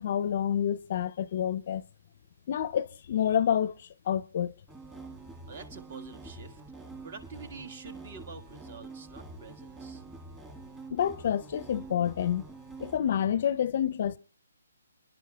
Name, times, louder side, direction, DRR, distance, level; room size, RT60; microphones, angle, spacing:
voice 1, 0.0-1.8 2.5-4.5 10.9-12.4 12.8-14.2, left 9 dB, 45° left, 0.5 m, -28 dB
sound 1, 4.7-13.0, right 3 dB, 10° right, 1.7 m, -46 dB
voice 2, 5.5-6.6 7.0-10.0, right 4 dB, 45° right, 1.5 m, -47 dB
27.5 x 11.0 x 2.3 m
hypercardioid pair, 155°, 0 cm